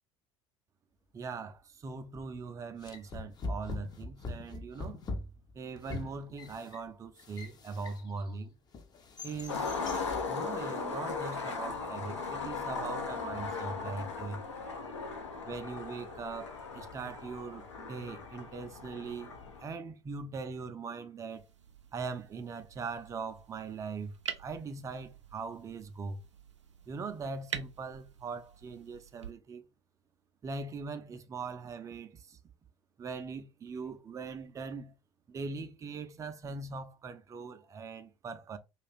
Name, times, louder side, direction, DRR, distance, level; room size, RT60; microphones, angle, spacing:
voice 1, 1.1-5.0 5.5-8.6 9.2-9.8 10.3-14.4 15.5-21.4 21.9-26.2 26.9-29.7 30.4-32.4 33.0-35.0 35.3-38.6, right 4 dB, 20° right, 0.4 m, -41 dB
sound 1, 2.1-2.4 2.8-8.3 8.7-10.3, left 2 dB, 25° left, 0.5 m, -42 dB
Skateboard, 9.5-19.6, left 4 dB, 75° left, 0.6 m, -38 dB
sound 2, 21.3-29.3, right 7 dB, 80° right, 0.4 m, -47 dB
2.4 x 2.4 x 3.3 m
figure-of-eight pair, 70°, 15 cm